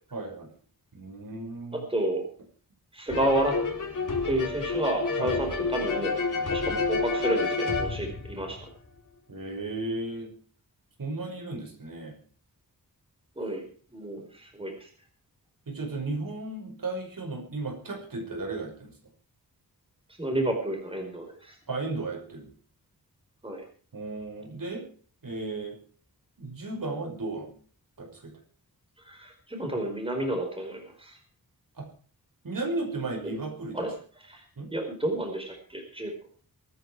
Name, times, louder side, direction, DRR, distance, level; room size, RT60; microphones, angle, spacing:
voice 1, 0.1-0.5 0.9-1.8 5.2-5.4 9.3-10.3 11.0-12.2 14.2-14.3 15.7-18.9 21.7-22.5 23.9-24.8 25.2-25.8 26.4-27.5 28.0-28.3 31.8-31.9 32.4-33.9 34.6-34.7, right 2 dB, 60° right, 2 dB, 5.7 m, -34 dB
voice 2, 1.9-2.3 2.9-3.5 4.2-6.1 6.5-8.6 13.4-13.6 13.9-14.9 20.2-21.6 23.4-23.6 29.0-31.2 33.2-33.3 33.7-34.4 34.7-36.1, right 1 dB, 15° right, 2 dB, 4.7 m, -30 dB
sound 1, 3.1-8.9, left 4 dB, 55° left, 4.2 m, -29 dB
23.5 x 10.5 x 4.8 m, 0.43 s
wide cardioid pair, 125°, 37 cm